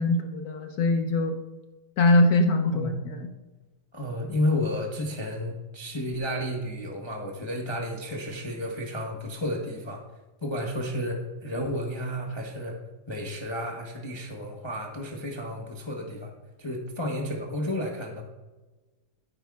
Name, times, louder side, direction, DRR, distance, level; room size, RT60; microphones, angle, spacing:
voice 1, 0.0-1.4 2.0-3.2, left 2 dB, 60° left, 4 dB, 1.1 m, -22 dB
voice 2, 3.9-10.0 10.4-12.8 13.1-16.3 16.6-18.2, left 1 dB, 25° left, 0 dB, 0.6 m, -32 dB
14.0 x 8.8 x 2.4 m, 1.2 s
omnidirectional pair, 2.2 m